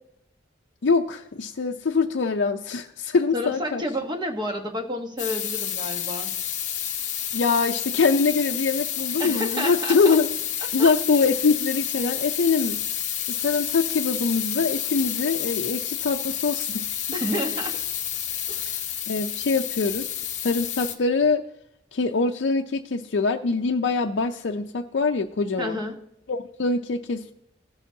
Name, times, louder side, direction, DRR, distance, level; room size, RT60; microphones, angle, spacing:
voice 1, 0.8-3.8 7.3-10.3 10.7-12.8 13.3-16.9 19.1-20.1 20.4-21.4 21.9-25.8 26.3-27.3, left 4 dB, 65° left, 2 dB, 0.5 m, -23 dB
voice 2, 3.3-6.3 9.2-10.2 10.8-10.9 17.1-17.8 18.5-18.9 25.6-26.0, equal, 25° right, 4 dB, 1.1 m, -30 dB
sound 1, 5.2-20.9, left 10 dB, 40° left, 0.8 m, -30 dB
16.5 x 7.0 x 2.7 m, 0.77 s
head